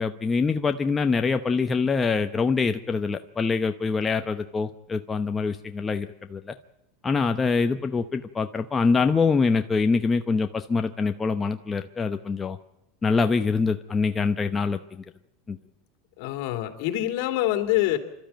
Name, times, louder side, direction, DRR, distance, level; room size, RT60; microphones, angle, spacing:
voice 1, 0.0-6.5 7.0-12.6 13.0-15.0 15.5-15.6, left 4 dB, 15° left, 7 dB, 0.8 m, -24 dB
voice 2, 16.2-18.0, left 14 dB, 65° left, 6 dB, 2.9 m, -25 dB
28.5 x 13.0 x 9.1 m, 0.87 s
supercardioid pair, 130°, 0 cm